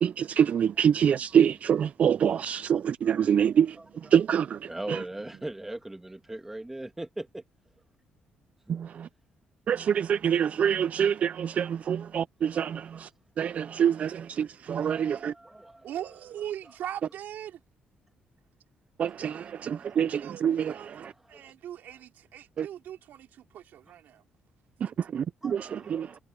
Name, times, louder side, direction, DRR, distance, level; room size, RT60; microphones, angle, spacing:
voice 1, 0.0-5.0 8.7-9.1 9.7-13.1 13.4-15.3 19.0-21.1 22.6-22.7 24.8-26.2, right 8 dB, 50° right, 0.4 m, -26 dB
voice 2, 3.1-3.5 4.7-7.4 8.7-8.8 11.9-12.0 12.5-12.6 14.1-14.2 14.8-15.9 19.8-20.0 21.0-21.5 25.4-26.2, right 1 dB, 10° right, 2.6 m, -40 dB
voice 3, 15.8-17.6 20.2-20.9 21.3-24.2, right 11 dB, 75° right, 3.5 m, -40 dB
cardioid pair, 120°, 3 cm